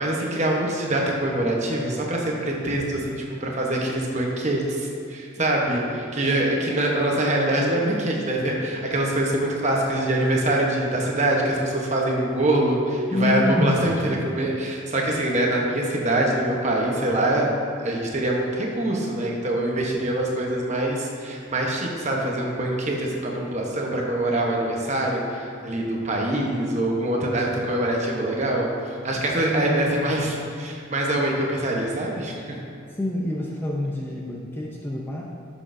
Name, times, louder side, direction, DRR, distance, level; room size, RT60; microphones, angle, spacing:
voice 1, 0.0-17.5 17.8-28.7 29.0-32.6, right 1 dB, 35° right, -1 dB, 1.0 m, -24 dB
voice 2, 13.1-14.1 29.5-30.3 32.9-35.2, left 1 dB, 10° left, -3 dB, 0.5 m, -27 dB
11.0 x 6.2 x 2.7 m, 2.5 s
head